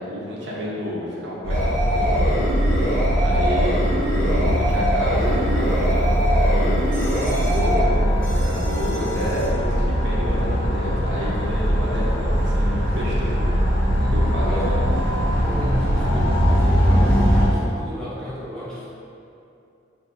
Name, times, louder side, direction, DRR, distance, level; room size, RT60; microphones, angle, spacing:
voice 1, 0.0-2.3 3.1-6.8 7.3-13.4 14.1-14.8, equal, 65° right, -6 dB, 0.7 m, -30 dB
sound 1, 1.4-17.5, equal, 30° left, 1.3 m, -21 dB
sound 2, 1.5-7.8, equal, 80° left, 1.2 m, -24 dB
voice 2, 13.9-14.8 15.4-18.9, equal, 5° left, -11 dB, 1.0 m, -34 dB
6.1 x 2.6 x 2.5 m, 2.6 s
head